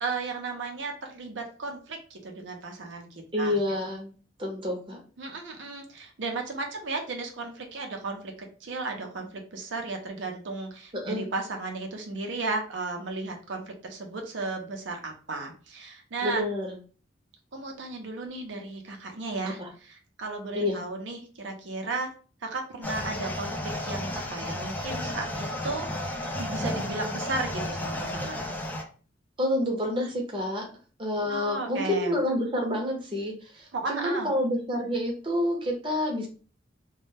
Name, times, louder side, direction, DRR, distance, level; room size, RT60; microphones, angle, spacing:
voice 1, 0.0-3.6 5.2-16.4 17.5-22.1 22.4-25.9 26.4-28.4 31.3-32.1 33.7-34.3, right 3 dB, 75° right, 3 dB, 0.6 m, -34 dB
voice 2, 3.3-5.0 11.0-11.2 16.2-16.8 19.4-19.7 20.5-20.8 29.4-30.7 31.0-36.3, left 1 dB, 25° right, 0 dB, 0.7 m, -28 dB
sound 1, 22.8-28.8, left 1 dB, 10° left, 0.4 m, -33 dB
2.2 x 2.0 x 3.2 m, 0.39 s
head